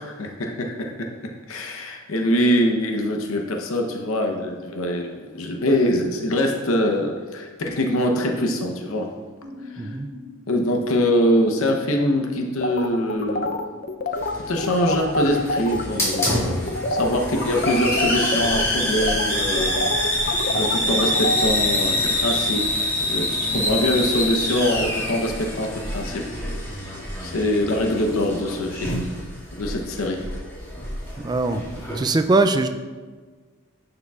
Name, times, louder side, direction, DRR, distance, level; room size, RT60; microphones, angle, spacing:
voice 1, 0.0-9.1 9.7-9.9 10.5-13.5 14.5-26.3 27.2-29.1 29.6-30.2, left 1 dB, 70° left, 2 dB, 0.8 m, -24 dB
sound 1, 9.4-14.5, left 1 dB, 55° right, 1.1 m, -44 dB
voice 2, 9.8-10.1 31.2-31.6 31.9-32.7, right 3 dB, 20° right, 9 dB, 0.3 m, -21 dB
sound 2, 12.6-15.8 16.1-16.4 16.7-21.5, left 2 dB, 45° left, 0.5 m, -26 dB
Hiss, 14.1-32.1, left 1 dB, 15° left, 2.0 m, -26 dB
11.0 x 6.8 x 2.4 m, 1.5 s
head